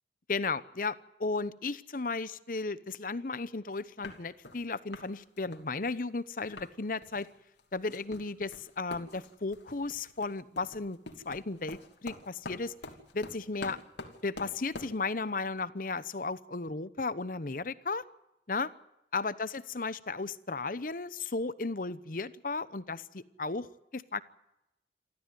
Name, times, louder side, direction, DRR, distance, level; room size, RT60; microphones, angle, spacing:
voice 1, 0.3-7.3 7.7-11.0 11.2-12.7 13.1-13.8 14.2-18.0 18.5-18.7 19.1-24.2, left 3 dB, 50° left, 16 dB, 0.9 m, -35 dB
sound 1, 3.7-3.8 4.0-4.6 4.9-5.1 5.4-6.7 7.0-7.3 7.6-15.0, left 2 dB, 85° left, 2.8 m, -46 dB
27.5 x 13.5 x 9.3 m, 0.89 s
head